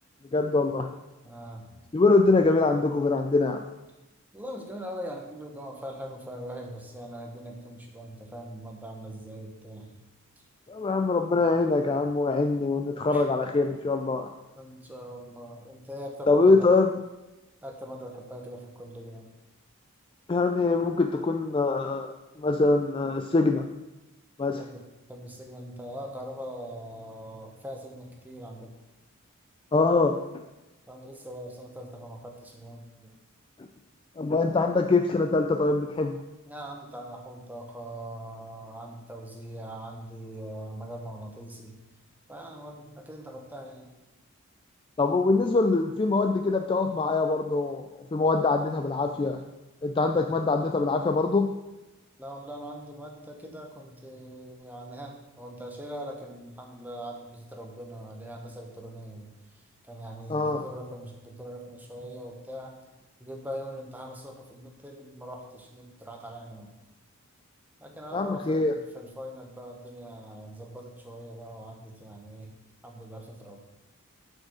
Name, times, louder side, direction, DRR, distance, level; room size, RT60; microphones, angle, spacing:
voice 1, 0.3-0.9 1.9-3.6 10.7-14.3 16.3-16.9 20.3-23.7 24.4-24.6 29.7-30.2 34.2-36.2 45.0-49.4 49.8-51.5 60.3-60.6 68.1-68.7, left 3 dB, 25° left, 6 dB, 0.3 m, -24 dB
voice 2, 1.2-2.2 4.3-9.9 13.1-13.3 14.6-16.7 17.6-19.3 24.6-24.8 25.1-28.7 30.9-33.1 36.5-41.8 42.3-43.9 49.1-49.2 50.1-50.3 52.2-62.7 63.2-66.7 67.8-72.6 72.8-73.6, equal, 10° right, 1 dB, 1.1 m, -41 dB
6.9 x 5.4 x 6.4 m, 1.0 s
head